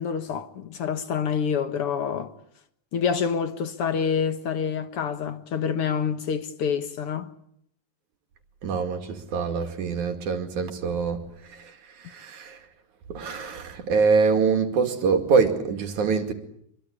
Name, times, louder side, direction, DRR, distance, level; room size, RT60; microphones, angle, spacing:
voice 1, 0.0-2.3 2.9-7.3, left 7 dB, 55° left, 1.6 m, -27 dB
voice 2, 8.6-12.6 13.1-16.3, right 5 dB, 55° right, 3.5 m, -25 dB
26.5 x 23.0 x 8.6 m
omnidirectional pair, 4.3 m